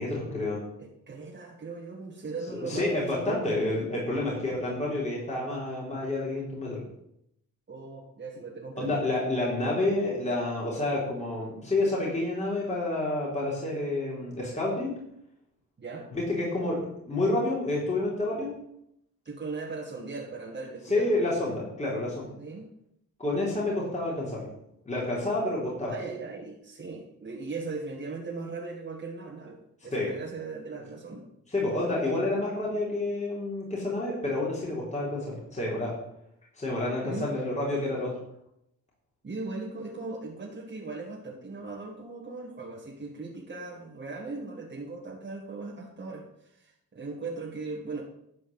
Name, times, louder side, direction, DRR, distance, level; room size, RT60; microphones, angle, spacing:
voice 1, 0.0-0.6 2.5-6.8 8.8-14.9 16.1-16.8 17.0-18.5 20.9-22.3 23.2-24.5 24.9-25.9 29.9-30.1 31.5-35.9 36.6-38.2, left 2 dB, 20° left, -5 dB, 3.8 m, -29 dB
voice 2, 0.8-3.6 7.7-9.0 15.8-16.1 19.3-21.3 22.4-22.7 25.9-31.3 37.0-37.3 39.2-48.0, right 3 dB, 35° right, -3 dB, 2.0 m, -38 dB
12.0 x 5.1 x 7.7 m, 0.77 s
cardioid pair, 110°, 31 cm